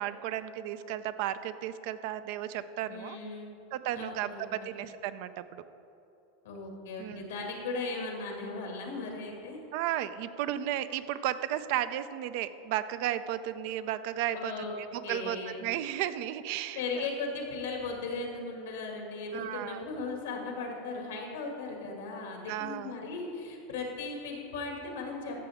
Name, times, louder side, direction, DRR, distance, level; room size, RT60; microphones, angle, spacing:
voice 1, 0.0-3.2 3.7-5.6 7.0-7.3 9.7-17.0 19.3-19.8 22.5-23.0, right 12 dB, 60° right, 13 dB, 0.4 m, -34 dB
voice 2, 2.9-3.6 3.9-4.7 6.4-9.6 14.3-14.8 15.0-15.6 16.8-25.4, left 3 dB, 85° left, 1 dB, 2.0 m, -37 dB
13.5 x 6.9 x 3.5 m, 2.8 s
supercardioid pair, 115°, 0 cm